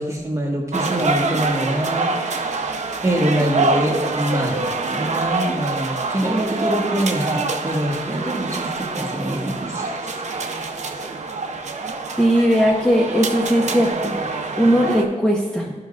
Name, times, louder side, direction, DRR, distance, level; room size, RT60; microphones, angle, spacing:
voice 1, 0.0-2.7 3.0-10.2, right 1 dB, 20° right, 0 dB, 1.3 m, -24 dB
sound 1, 0.7-15.0, right 3 dB, 60° right, 0.6 m, -25 dB
voice 2, 12.2-15.7, equal, 5° left, -3 dB, 0.7 m, -19 dB
12.0 x 5.8 x 2.4 m, 1.3 s
wide cardioid pair, 90°, 14 cm